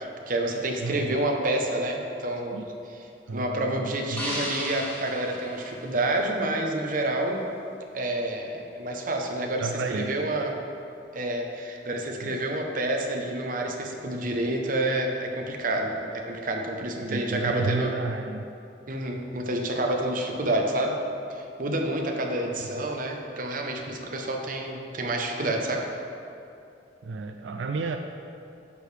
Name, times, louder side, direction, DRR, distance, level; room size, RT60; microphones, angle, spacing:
voice 1, 0.0-2.6 3.3-7.4 7.9-10.5 11.1-18.0 18.9-21.0 21.3-25.9, right 1 dB, 50° right, 2 dB, 0.9 m, -28 dB
voice 2, 0.8-1.2 2.5-2.7 3.3-4.4 9.6-10.5 12.2-12.4 17.0-18.5 27.0-28.0, right 4 dB, 90° right, 6 dB, 0.4 m, -32 dB
sound 1, 4.2-6.4, equal, 10° left, 1.8 m, -35 dB
10.5 x 6.6 x 3.4 m, 2.6 s
head